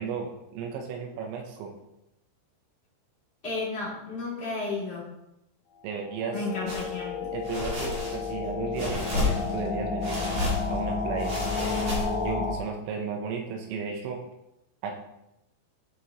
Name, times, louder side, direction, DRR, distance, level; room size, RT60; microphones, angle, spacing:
voice 1, 0.0-1.7 5.8-6.4 7.3-10.2 10.7-11.7 12.2-14.2 14.8-15.0, right 6 dB, 85° right, 2 dB, 3.3 m, -34 dB
voice 2, 3.4-5.1 6.3-7.3, left 3 dB, 15° left, -7 dB, 2.3 m, -33 dB
sound 1, 5.9-12.6, left 4 dB, 85° left, 1.9 m, -31 dB
sound 2, 6.7-6.9 7.4-8.3 8.7-9.7 10.0-10.8 11.2-12.3, left 2 dB, 40° right, 2.3 m, -31 dB
11.5 x 6.1 x 3.0 m, 0.87 s
omnidirectional pair, 5.4 m